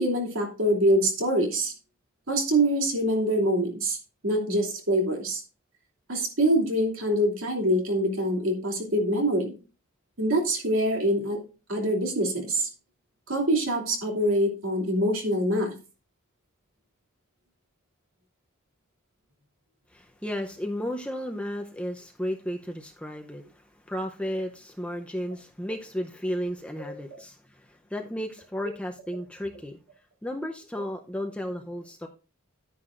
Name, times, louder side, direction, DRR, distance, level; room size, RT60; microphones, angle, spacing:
voice 1, 0.0-1.7 2.3-4.0 4.2-5.4 6.1-9.6 10.2-11.4 11.7-12.7 13.3-15.7 26.8-27.0, right 1 dB, 65° right, 1 dB, 2.8 m, -25 dB
voice 2, 19.9-29.8 30.2-32.1, equal, 5° left, 3 dB, 0.6 m, -34 dB
10.5 x 9.8 x 2.5 m, 0.33 s
head